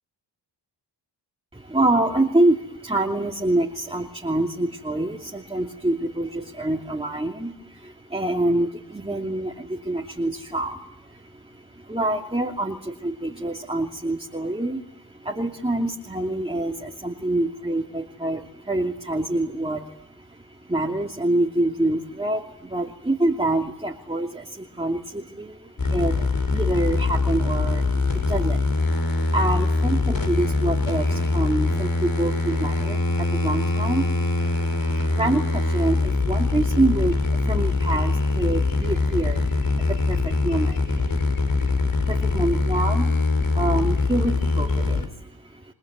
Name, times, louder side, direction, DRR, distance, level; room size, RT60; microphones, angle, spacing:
voice 1, 1.5-28.9 29.2-34.5 34.9-45.7, right 1 dB, 10° right, 0 dB, 2.8 m, -26 dB
sound 1, 25.8-45.1, left 3 dB, 45° left, 4.8 m, -23 dB
29.5 x 20.0 x 9.5 m, 0.76 s
cardioid pair, 70°, 45 cm